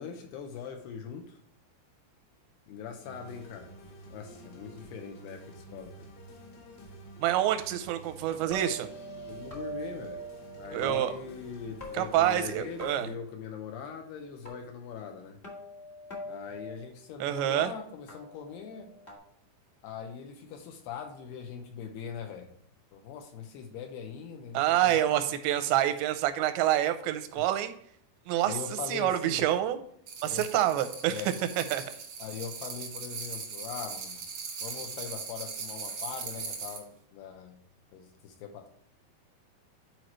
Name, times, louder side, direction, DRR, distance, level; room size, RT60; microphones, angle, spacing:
voice 1, 0.0-1.4 2.7-3.7 4.1-6.1 9.3-10.2 10.6-15.4 16.3-18.9 19.8-22.5 22.9-25.2 27.3-27.5 28.4-29.4 30.2-30.6 31.1-31.3 32.2-34.2 34.6-37.6 37.9-38.7, left 7 dB, 75° left, 4 dB, 2.7 m, -41 dB
sound 1, 3.0-13.1, right 1 dB, 60° left, 3.1 m, -50 dB
voice 2, 7.2-8.9 10.7-11.1 11.9-13.1 17.2-17.7 24.5-27.7 28.3-28.6 28.9-29.8 30.2-31.2 31.6-31.8, right 12 dB, 85° right, 9 dB, 2.9 m, -27 dB
sound 2, 8.4-10.9 11.8-12.5 12.8-13.2 14.4-14.5 15.4-16.7 18.1-19.2, right 1 dB, 45° left, 0.6 m, -42 dB
sound 3, 30.1-36.8, right 5 dB, 65° right, 1.4 m, -40 dB
10.5 x 4.7 x 3.1 m, 0.67 s
omnidirectional pair, 5.0 m